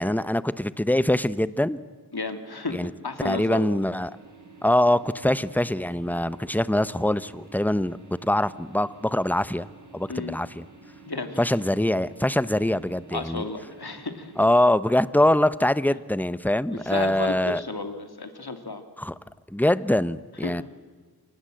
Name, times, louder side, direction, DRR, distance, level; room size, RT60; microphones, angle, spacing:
voice 1, 0.0-1.8 2.7-2.9 3.2-4.1 4.6-8.0 8.2-9.7 9.9-10.6 11.4-13.4 14.4-17.6 19.0-19.1 19.5-20.6, left 1 dB, 5° left, 15 dB, 0.9 m, -23 dB
voice 2, 2.1-3.7 10.1-10.4 11.1-11.4 13.1-14.3 16.7-18.8 20.4-20.6, left 3 dB, 70° left, 7 dB, 2.7 m, -33 dB
sound 1, 4.0-14.5, right 4 dB, 50° right, 4.0 m, -50 dB
28.0 x 26.0 x 7.8 m, 1.5 s
wide cardioid pair, 60°, 39 cm